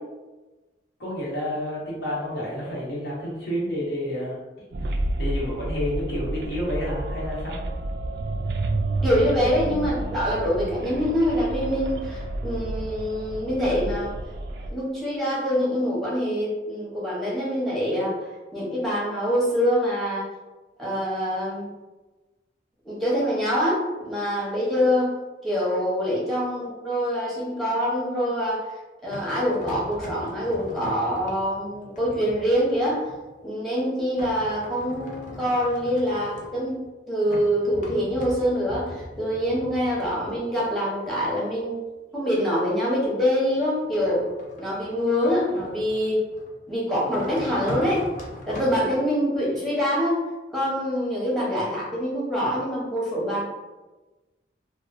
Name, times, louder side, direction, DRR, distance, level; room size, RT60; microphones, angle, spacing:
voice 1, 1.0-4.4 4.9-7.6, equal, 70° left, -6 dB, 1.1 m, -30 dB
sound 1, 4.7-14.7, right 2 dB, 65° right, 0.3 m, -30 dB
voice 2, 9.0-14.2 14.7-20.3 20.8-21.7 22.8-25.1 25.4-28.7 29.0-33.1 33.4-36.8 37.1-41.8 42.1-44.2 44.6-46.2 46.7-48.0 48.5-50.2 50.5-53.5, equal, ahead, -7 dB, 0.8 m, -25 dB
sound 2, 29.1-33.5 34.2-36.9 37.2-41.9 43.5-46.6 47.1-48.8, left 1 dB, 45° left, 0.5 m, -40 dB
3.0 x 2.1 x 2.5 m, 1.2 s
head